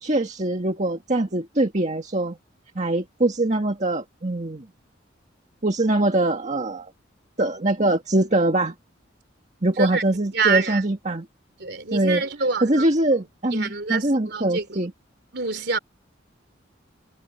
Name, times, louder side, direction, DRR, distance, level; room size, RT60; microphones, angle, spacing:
voice 1, 0.0-2.4 2.8-4.7 5.6-6.9 7.4-8.7 9.6-11.3 11.9-12.2 12.6-14.9, right 1 dB, 40° right, 1.8 m, -23 dB
voice 2, 10.3-10.8 11.6-12.9 13.5-14.7 15.3-15.8, right 4 dB, 60° right, 3.7 m, -26 dB
head